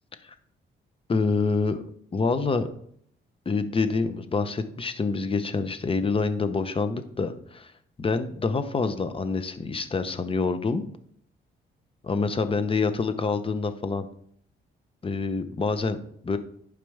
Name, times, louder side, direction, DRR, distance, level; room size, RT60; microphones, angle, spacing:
voice 1, 1.1-1.8 2.1-2.7 3.5-7.7 8.0-10.8 12.0-14.1 15.0-16.4, left 4 dB, 25° left, 10 dB, 0.9 m, -26 dB
11.5 x 5.0 x 3.4 m, 0.65 s
cardioid pair, 90°, 20 cm